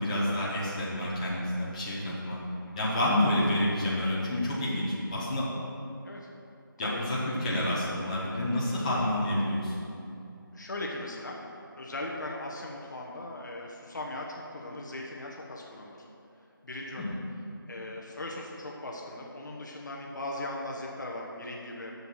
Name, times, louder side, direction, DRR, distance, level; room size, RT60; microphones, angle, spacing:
voice 1, 0.0-2.4 2.8-5.5 6.8-9.9 17.0-17.1, left 1 dB, 20° left, -8 dB, 1.3 m, -29 dB
voice 2, 10.5-11.3 11.8-16.1 16.6-17.1 17.7-21.9, left 1 dB, 55° left, -2 dB, 1.1 m, -39 dB
6.8 x 6.7 x 6.4 m, 2.6 s
figure-of-eight pair, 170°, 12 cm